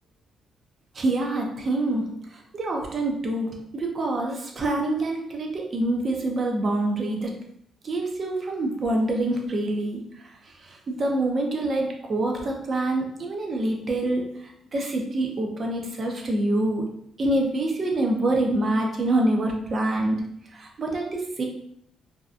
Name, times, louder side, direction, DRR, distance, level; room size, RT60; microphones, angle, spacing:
voice 1, 0.9-7.4 7.8-10.3 10.6-20.2 20.5-21.4, right 2 dB, 45° right, 1 dB, 0.6 m, -26 dB
2.7 x 2.3 x 2.4 m, 0.70 s
cardioid pair, 90°, 0 cm